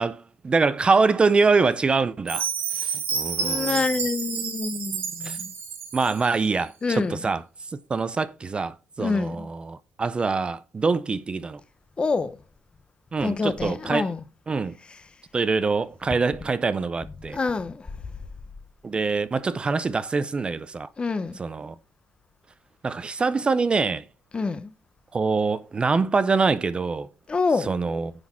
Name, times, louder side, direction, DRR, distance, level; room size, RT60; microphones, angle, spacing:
voice 1, 0.0-2.5 2.7-3.8 5.2-5.4 5.9-7.4 7.7-11.6 13.1-14.1 14.5-14.8 15.3-17.4 18.8-20.9 21.4-21.8 22.8-24.0 25.1-27.1 27.7-28.1, right 4 dB, 25° right, 0.4 m, -24 dB
Chime, 2.3-6.3, right 6 dB, 60° right, 2.5 m, -30 dB
voice 2, 3.4-5.5 6.8-7.2 9.0-9.5 12.0-12.3 13.2-14.2 17.3-17.9 21.0-21.4 24.3-24.7 27.3-27.7, left 4 dB, 25° left, 0.7 m, -26 dB
9.7 x 4.1 x 4.4 m
cardioid pair, 115°, 4 cm